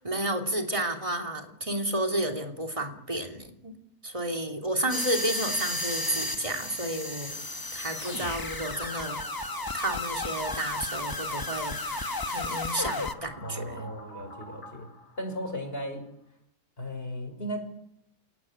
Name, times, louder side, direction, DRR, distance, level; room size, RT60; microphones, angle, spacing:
voice 1, 0.0-3.7 4.0-7.4 7.7-9.2 9.7-13.9, right 1 dB, 20° right, 3 dB, 3.1 m, -31 dB
sound 1, 4.9-13.1, left 2 dB, 15° left, 1.0 m, -33 dB
sound 2, 7.9-15.9, left 2 dB, 60° left, 3.8 m, -47 dB
voice 2, 13.4-14.9 15.2-16.1 16.8-17.7, equal, 35° left, 6 dB, 5.8 m, -36 dB
28.0 x 18.5 x 8.9 m, 0.77 s
omnidirectional pair, 1.6 m